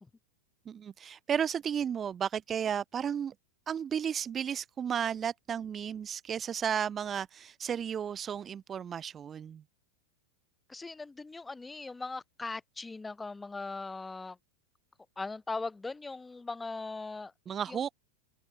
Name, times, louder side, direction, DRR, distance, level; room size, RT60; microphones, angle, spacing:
voice 1, 0.7-3.3 3.7-9.6 17.5-17.9, right 8 dB, 25° right, 0.9 m, -33 dB
voice 2, 10.7-14.4 15.2-17.3 17.7-17.8, left 3 dB, 10° left, 2.9 m, -39 dB
open air
figure-of-eight pair, 90°, 0 cm